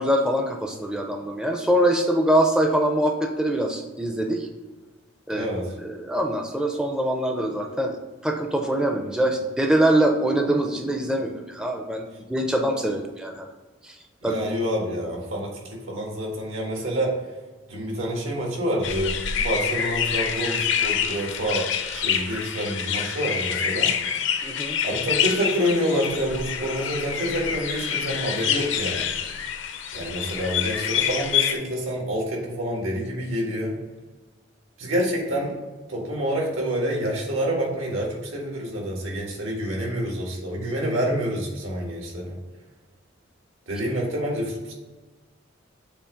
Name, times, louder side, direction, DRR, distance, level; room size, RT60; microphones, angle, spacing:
voice 1, 0.0-4.5 5.3-5.5 5.8-8.0 8.2-13.5 13.8-14.0 14.2-14.4 24.4-24.8, right 1 dB, 5° right, 3 dB, 0.4 m, -23 dB
voice 2, 5.3-5.7 14.2-17.1 17.7-21.6 21.9-23.9 24.8-29.1 29.9-33.8 34.8-35.6 35.9-42.4 43.7-44.7, equal, 85° right, -1 dB, 1.7 m, -27 dB
sound 1, 18.8-31.6, left 8 dB, 70° left, 0.6 m, -27 dB
7.1 x 2.9 x 5.0 m, 1.3 s
head